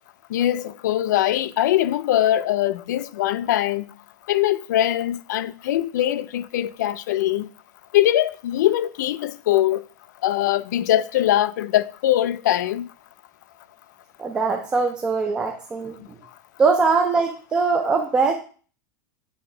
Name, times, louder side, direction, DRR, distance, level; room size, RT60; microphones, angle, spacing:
voice 1, 0.3-3.8 4.3-7.5 7.9-9.8 10.2-12.9, left 13 dB, 70° left, 0.4 m, -22 dB
voice 2, 14.2-16.0 16.6-18.3, right 4 dB, 10° right, 0.3 m, -21 dB
9.1 x 3.3 x 4.8 m
supercardioid pair, 180°, 10 cm